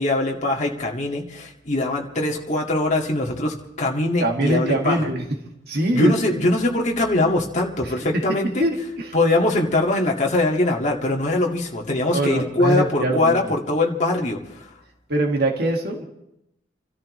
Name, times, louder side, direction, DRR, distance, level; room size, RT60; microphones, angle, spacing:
voice 1, 0.0-5.0 5.9-8.6 9.1-14.4, left 2 dB, 40° left, -1 dB, 2.1 m, -22 dB
voice 2, 4.2-5.2 5.7-6.4 7.8-8.0 8.6-9.2 12.1-13.5 15.1-16.0, right 1 dB, 55° right, 1 dB, 2.0 m, -23 dB
29.0 x 13.5 x 3.3 m, 0.82 s
head